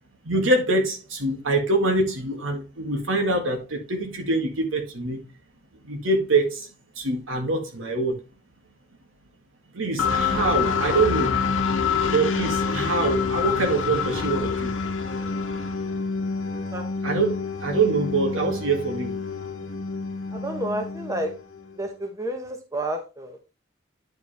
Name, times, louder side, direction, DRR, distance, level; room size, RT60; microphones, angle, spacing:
voice 1, 0.2-5.2 5.8-6.7 7.0-8.2 9.7-11.3 12.1-14.7 17.0-19.1, right 3 dB, 75° right, 1.9 m, -24 dB
sound 1, 10.0-21.8, left 5 dB, 75° left, 1.1 m, -27 dB
voice 2, 20.3-21.3 21.8-23.4, right 1 dB, 15° right, 0.9 m, -30 dB
9.6 x 4.8 x 3.4 m
head